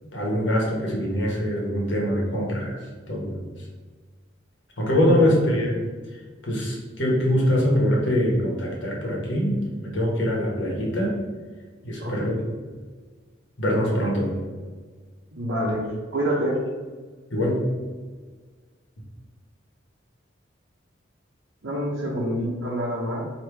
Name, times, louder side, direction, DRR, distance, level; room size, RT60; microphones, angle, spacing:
voice 1, 0.1-3.5 4.8-5.9 6.4-11.2 11.8-12.4 13.6-14.4 17.3-17.6, equal, 70° left, -2 dB, 1.2 m, -23 dB
voice 2, 15.3-15.8 16.1-16.6 21.6-23.2, equal, 85° right, -6 dB, 0.9 m, -26 dB
3.3 x 2.9 x 4.4 m, 1.4 s
head